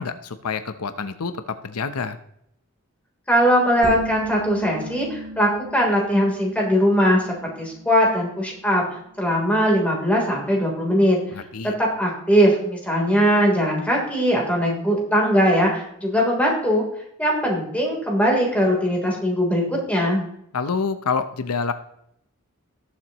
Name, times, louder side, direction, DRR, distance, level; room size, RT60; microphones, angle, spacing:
voice 1, 0.0-2.2 11.3-11.7 20.5-21.7, left 5 dB, 85° left, 10 dB, 0.8 m, -27 dB
voice 2, 3.3-8.8 9.2-11.2 11.8-16.8 17.2-20.2, equal, 5° left, -2 dB, 3.4 m, -20 dB
sound 1, 3.8-9.2, right 1 dB, 50° right, 2.1 m, -36 dB
18.5 x 7.4 x 3.0 m, 0.73 s
head